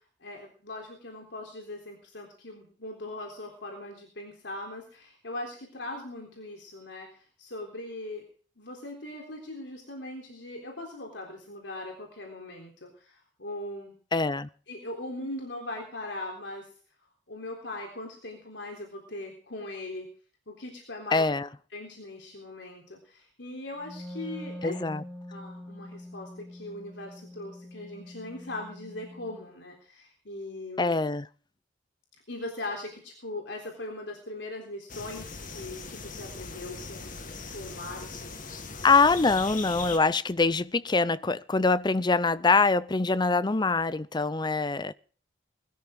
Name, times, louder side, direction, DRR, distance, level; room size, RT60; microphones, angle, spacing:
voice 1, 0.2-8.2 8.6-13.9 14.7-16.7 17.3-20.1 20.5-21.2 21.7-24.7 25.3-30.9 32.3-37.2 37.5-38.4, left 2 dB, 75° left, 3.8 m, -40 dB
voice 2, 14.1-14.5 21.1-21.5 24.6-25.0 30.8-31.3 38.8-44.9, left 3 dB, 25° left, 0.6 m, -24 dB
Wind instrument woodwind instrument, 23.8-29.5, left 1 dB, 5° left, 2.4 m, -44 dB
sound 1, 34.9-40.0, left 4 dB, 45° left, 1.9 m, -40 dB
21.0 x 13.5 x 3.9 m
head